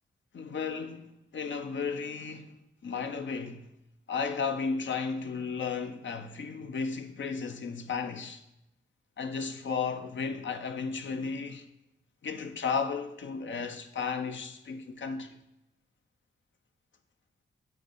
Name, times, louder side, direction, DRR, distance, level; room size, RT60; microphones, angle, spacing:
voice 1, 0.3-2.6 2.8-3.7 4.1-8.4 9.2-11.6 12.2-15.4, left 5 dB, 60° left, 0.7 m, -34 dB
8.2 x 3.1 x 5.4 m
supercardioid pair, 40°, 21 cm